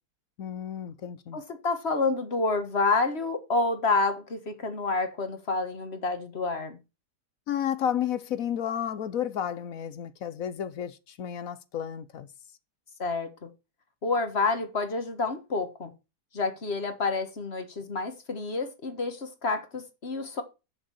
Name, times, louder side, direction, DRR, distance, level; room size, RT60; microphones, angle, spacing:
voice 1, 0.4-1.4 7.5-12.3, left 9 dB, 60° left, 1.1 m, -32 dB
voice 2, 1.3-6.8 13.0-13.5 14.0-15.9 16.3-20.4, left 3 dB, 40° left, 1.7 m, -29 dB
8.2 x 6.4 x 6.3 m
omnidirectional pair, 1.8 m